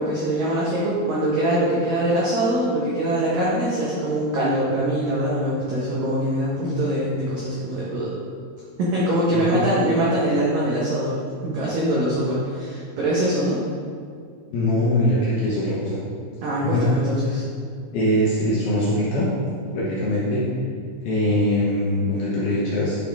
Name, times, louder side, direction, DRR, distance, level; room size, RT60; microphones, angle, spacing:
voice 1, 0.0-8.1 8.8-13.6 16.4-17.4, right 1 dB, 80° right, -7 dB, 1.9 m, -23 dB
voice 2, 14.5-16.0 16.6-16.8 17.9-19.3 19.7-20.4 21.0-23.0, left 1 dB, 65° left, -7 dB, 2.4 m, -22 dB
11.0 x 6.1 x 3.6 m, 2.2 s
omnidirectional pair, 5.9 m